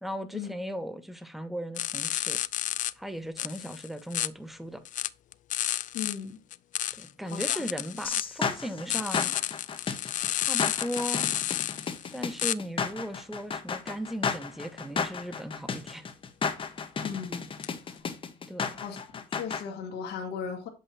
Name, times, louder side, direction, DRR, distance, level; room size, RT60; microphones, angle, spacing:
voice 1, 0.0-2.4 3.0-4.8 6.9-9.3 10.3-11.3 12.1-16.1 18.5-18.8, equal, ahead, 0.9 m, -37 dB
sound 1, 1.8-2.9 3.4-4.3 4.9-6.2 6.5-8.2 8.9-12.5 17.6-17.7, left 12 dB, 50° left, 0.4 m, -31 dB
voice 2, 5.9-6.4 7.2-7.6 17.0-17.4 17.9-18.0 18.7-20.7, left 7 dB, 80° left, 1.6 m, -37 dB
sound 2, 8.0-19.6, left 5 dB, 30° left, 1.0 m, -33 dB
7.7 x 5.5 x 2.7 m
cardioid pair, 110°, 17 cm